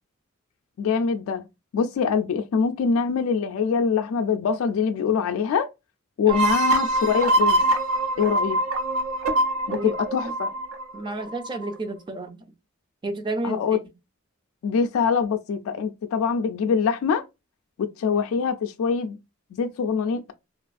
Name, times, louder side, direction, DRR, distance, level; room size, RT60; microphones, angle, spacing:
voice 1, 0.8-1.4 1.7-5.7 6.2-7.6 8.2-8.6 9.7-10.5 13.4-13.8 14.6-17.2 17.8-19.2 19.5-20.3, left 6 dB, 80° left, 0.3 m, -24 dB
sound 1, 6.3-11.7, right 1 dB, 70° right, 0.5 m, -24 dB
voice 2, 10.9-12.4 13.0-13.8, right 2 dB, 20° right, 0.4 m, -31 dB
2.9 x 2.3 x 2.4 m
head